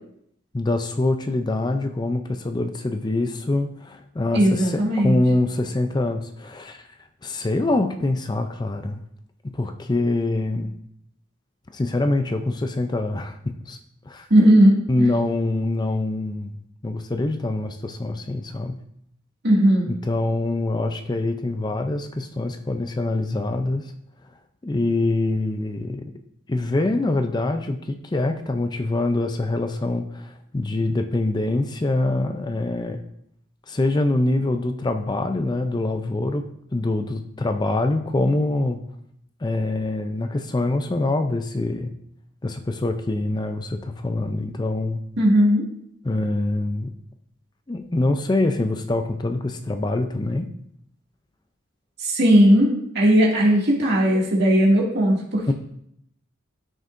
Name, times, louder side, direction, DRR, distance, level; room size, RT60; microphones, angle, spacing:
voice 1, 0.5-6.9 7.2-9.0 9.4-10.7 11.7-13.8 14.1-14.3 14.9-16.5 16.8-18.8 19.9-23.9 24.6-26.1 26.5-33.0 33.7-36.5 36.7-38.8 39.4-41.9 42.4-45.0 46.0-46.9 47.7-50.5 55.5-55.6, left 2 dB, 20° left, 7 dB, 0.4 m, -24 dB
voice 2, 4.3-5.2 14.3-15.1 19.4-19.9 45.2-45.6 52.0-55.5, equal, 55° right, -3 dB, 2.2 m, -17 dB
13.0 x 6.4 x 2.6 m, 0.73 s
head